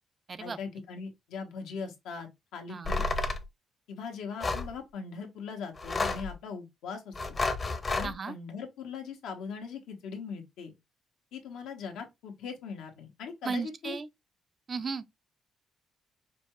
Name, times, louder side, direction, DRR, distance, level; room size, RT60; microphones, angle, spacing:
voice 1, 0.4-3.0 3.9-7.4 7.9-10.7 11.3-14.0, left 5 dB, 90° left, 1.2 m, -40 dB
voice 2, 2.7-3.0 8.0-8.3 13.4-14.1 14.7-15.0, right 5 dB, 40° right, 0.4 m, -35 dB
sound 1, 2.9-3.4 4.4-4.7 5.8-6.3 7.1-8.1, left 3 dB, 35° left, 0.7 m, -30 dB
5.1 x 2.3 x 3.0 m
cardioid pair, 90°, 0 cm